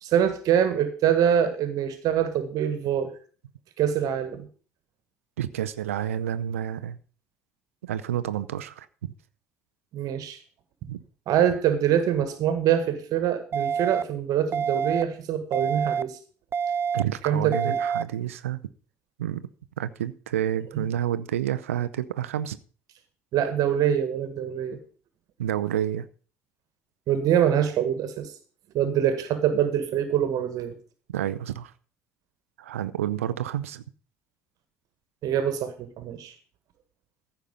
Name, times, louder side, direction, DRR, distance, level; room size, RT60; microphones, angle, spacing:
voice 1, 0.0-3.1 3.8-4.5 9.9-10.4 11.3-16.2 17.2-17.8 20.7-20.8 23.3-24.8 27.1-28.3 28.7-30.7 35.2-36.3, right 9 dB, 55° right, 10 dB, 1.6 m, -24 dB
voice 2, 5.4-7.0 7.8-8.9 10.9-11.0 16.9-18.7 19.2-19.5 19.8-22.6 25.4-26.1 31.1-31.7 32.6-33.8, right 11 dB, 80° right, 13 dB, 0.6 m, -29 dB
sound 1, 13.5-14.0 14.5-15.0 15.5-16.0 16.5-17.0 17.5-18.0, right 7 dB, 35° right, 0.5 m, -26 dB
15.0 x 5.9 x 5.3 m, 0.40 s
figure-of-eight pair, 55°, 7 cm